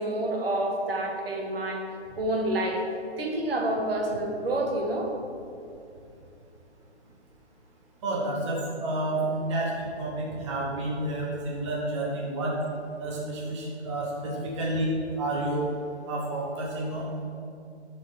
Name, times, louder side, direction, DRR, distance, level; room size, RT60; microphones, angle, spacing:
voice 1, 0.0-1.8 2.2-2.8 3.2-5.1 9.3-9.4, right 1 dB, 60° right, 1 dB, 1.2 m, -28 dB
voice 2, 8.0-12.6 13.0-15.7 16.1-17.0, right 1 dB, 25° right, -4 dB, 0.9 m, -30 dB
6.9 x 4.4 x 5.3 m, 2.7 s
hypercardioid pair, 160°, 34 cm